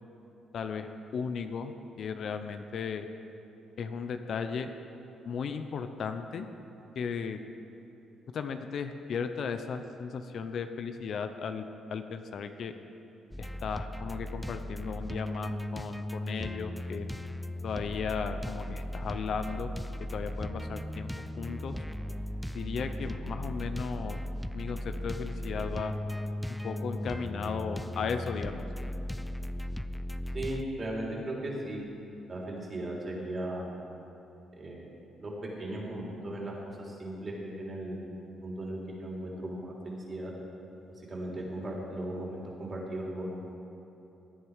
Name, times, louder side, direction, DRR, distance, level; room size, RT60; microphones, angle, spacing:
voice 1, 0.5-3.1 3.8-4.7 5.3-6.5 7.0-7.4 8.3-12.7 13.4-17.1 17.6-19.7 20.1-21.1 21.4-21.7 22.5-24.2 24.5-25.9 26.6-28.6, left 6 dB, 60° left, 8 dB, 0.8 m, -36 dB
sound 1, 13.3-30.6, left 1 dB, 5° left, 0.5 m, -37 dB
voice 2, 30.3-31.8 32.3-33.7 34.6-34.9 35.2-40.3 40.8-43.6, right 1 dB, 35° right, -3 dB, 3.6 m, -37 dB
17.5 x 9.7 x 5.0 m, 3.0 s
cardioid pair, 90°, 0 cm